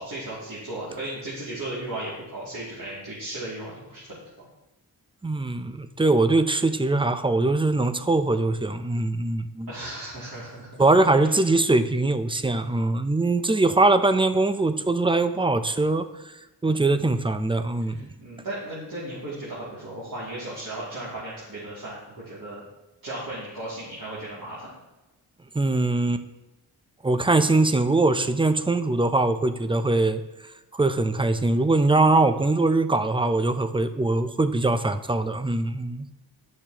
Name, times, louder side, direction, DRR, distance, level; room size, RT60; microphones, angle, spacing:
voice 1, 0.0-4.0 4.4-4.5 9.7-11.5 17.9-22.6 23.0-24.7, right 1 dB, 55° right, -9 dB, 2.7 m, -36 dB
voice 2, 5.2-9.7 10.8-16.1 16.6-18.1 25.5-26.2 27.0-30.2 30.7-36.1, right 2 dB, 15° right, 10 dB, 0.5 m, -22 dB
10.5 x 6.5 x 3.0 m, 1.0 s
cardioid pair, 50°, 42 cm